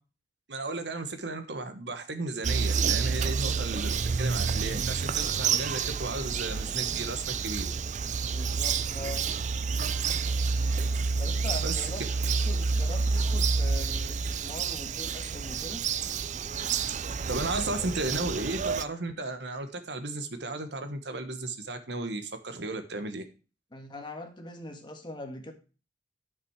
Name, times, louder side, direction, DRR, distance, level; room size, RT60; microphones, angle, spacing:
voice 1, 0.5-7.7 11.6-11.9 17.3-23.2, right 2 dB, 70° right, 8 dB, 1.3 m, -34 dB
Bird vocalization bird call bird song, 2.4-18.8, right 5 dB, 45° right, 0.4 m, -29 dB
voice 2, 8.3-9.3 11.2-15.8 23.7-25.5, left 2 dB, 25° left, 4 dB, 1.7 m, -42 dB
11.0 x 6.1 x 4.8 m, 0.34 s
head